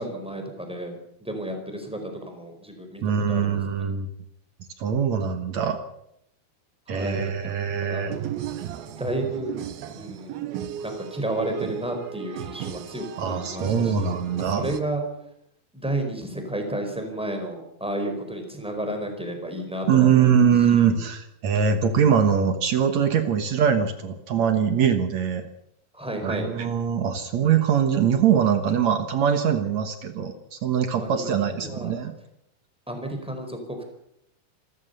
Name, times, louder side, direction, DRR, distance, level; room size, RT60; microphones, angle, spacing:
voice 1, 0.0-3.6 6.9-7.5 7.8-8.1 8.9-9.5 9.9-10.4 10.8-15.0 15.7-20.4 20.8-21.0 25.9-26.5 31.0-31.9 32.9-33.8, right 1 dB, ahead, 4 dB, 4.2 m, -32 dB
voice 2, 3.0-4.1 4.8-5.8 6.9-8.2 13.2-14.7 19.9-25.4 26.2-32.2, right 7 dB, 60° right, 8 dB, 2.1 m, -22 dB
sound 1, 8.1-14.8, right 10 dB, 75° right, 2.9 m, -35 dB
27.0 x 14.0 x 6.9 m, 0.77 s
omnidirectional pair, 4.6 m